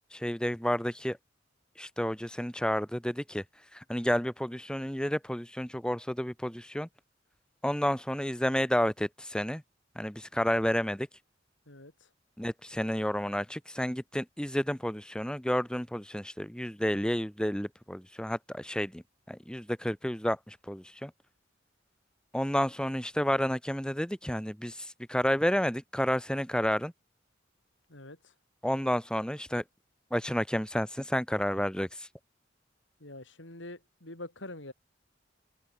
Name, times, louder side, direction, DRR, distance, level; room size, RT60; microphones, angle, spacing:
voice 1, 0.1-1.2 1.8-3.4 3.9-6.9 7.6-9.6 9.9-11.1 12.4-19.0 19.3-21.1 22.3-24.8 25.1-26.9 28.6-29.6 30.1-31.9, equal, 5° left, 1.7 m, -30 dB
voice 2, 11.7-12.1 27.9-28.3 33.0-34.7, left 2 dB, 80° left, 6.1 m, -45 dB
head